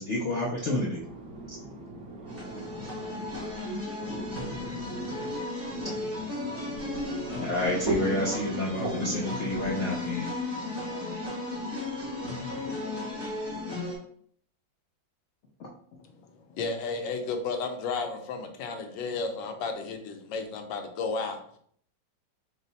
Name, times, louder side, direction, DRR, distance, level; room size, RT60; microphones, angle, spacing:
voice 1, 0.0-1.0 7.4-10.3 15.6-15.7, left 2 dB, 65° left, -3 dB, 0.7 m, -29 dB
voice 2, 0.7-3.4 4.0-5.3 5.7-9.4, right 2 dB, 60° right, -2 dB, 1.2 m, -38 dB
sound 1, 2.3-14.0, left 2 dB, 15° right, 0.5 m, -35 dB
voice 3, 16.5-21.4, left 4 dB, 85° left, 5 dB, 1.3 m, -33 dB
4.6 x 2.1 x 4.0 m, 0.62 s
omnidirectional pair, 2.0 m